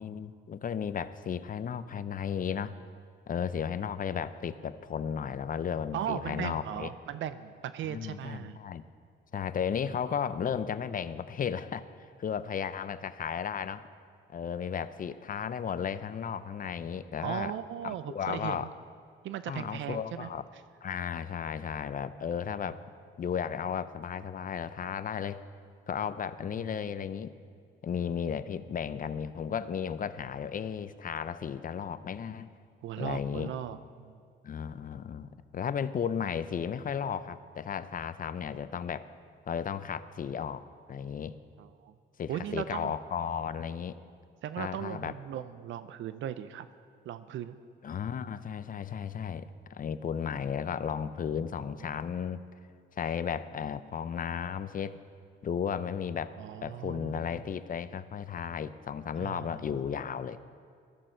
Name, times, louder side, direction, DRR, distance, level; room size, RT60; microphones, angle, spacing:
voice 1, 0.0-2.8 3.3-6.9 7.9-8.8 9.3-11.9 12.2-13.9 14.3-17.5 17.8-18.7 19.5-20.4 20.8-22.8 23.2-25.4 25.9-27.3 27.8-32.5 33.0-33.5 34.4-39.1 39.5-41.3 42.2-44.0 44.6-45.1 47.8-52.4 53.0-55.0 55.4-56.3 56.6-60.4, left 7 dB, 45° left, 14 dB, 0.6 m, -34 dB
voice 2, 5.9-8.6 17.2-18.7 19.2-20.6 32.8-34.1 41.6-41.9 42.3-42.9 44.4-46.7 47.1-47.6 56.4-57.3 59.2-59.7, right 10 dB, 75° right, 12 dB, 0.6 m, -37 dB
16.5 x 13.5 x 4.5 m, 2.2 s
cardioid pair, 90°, 20 cm